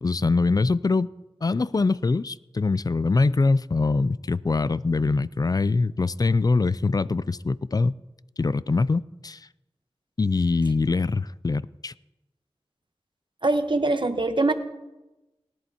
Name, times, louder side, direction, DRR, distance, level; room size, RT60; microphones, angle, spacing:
voice 1, 0.0-1.1 1.4-7.9 8.4-9.5 10.2-11.9, left 3 dB, 35° left, 18 dB, 0.3 m, -23 dB
voice 2, 13.4-14.5, right 2 dB, 50° right, 8 dB, 1.0 m, -23 dB
18.5 x 11.0 x 2.9 m, 1.0 s
wide cardioid pair, 45°, 11 cm